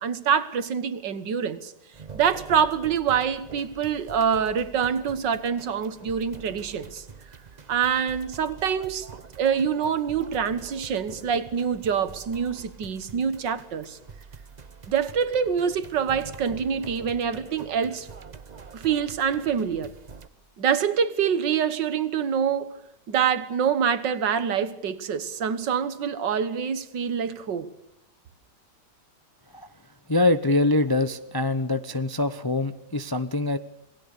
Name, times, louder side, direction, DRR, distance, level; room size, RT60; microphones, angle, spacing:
voice 1, 0.0-1.7 2.1-7.1 7.7-9.1 9.4-14.0 14.9-18.1 18.7-19.9 20.6-22.8 23.1-27.7, right 7 dB, 85° right, 2.0 m, -25 dB
sound 1, 1.9-20.3, right 5 dB, 35° right, 0.8 m, -45 dB
voice 2, 30.1-33.6, left 2 dB, 30° left, 0.4 m, -24 dB
28.0 x 19.0 x 6.7 m
omnidirectional pair, 1.9 m